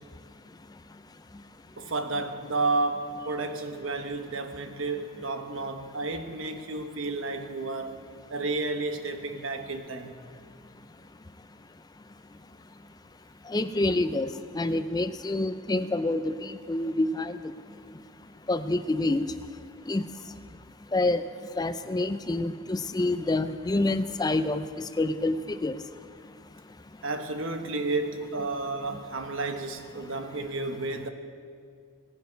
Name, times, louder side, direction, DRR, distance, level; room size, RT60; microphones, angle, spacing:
voice 1, 1.8-8.0 8.3-10.2 27.0-31.1, right 3 dB, 70° right, 6 dB, 1.2 m, -31 dB
voice 2, 13.5-14.3 14.5-17.4 18.5-19.3 19.9-20.0 20.9-21.2 21.6-24.6 25.0-25.8, left 2 dB, 20° left, 11 dB, 0.4 m, -27 dB
20.5 x 9.2 x 5.1 m, 2.2 s
head